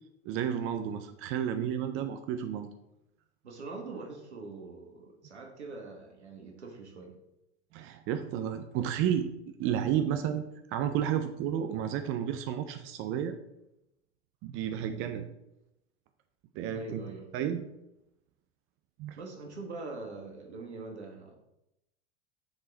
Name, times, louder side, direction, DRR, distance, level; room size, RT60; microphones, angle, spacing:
voice 1, 0.2-2.7 7.7-9.3 9.6-10.4 10.7-13.4 14.4-15.3 16.5-17.0 17.3-17.7 19.0-19.2, right 9 dB, 40° right, 8 dB, 0.5 m, -31 dB
voice 2, 3.4-7.2 16.7-17.5 19.2-21.3, right 3 dB, 85° right, 2 dB, 1.4 m, -43 dB
6.9 x 3.7 x 3.9 m, 0.86 s
hypercardioid pair, 85°, 33 cm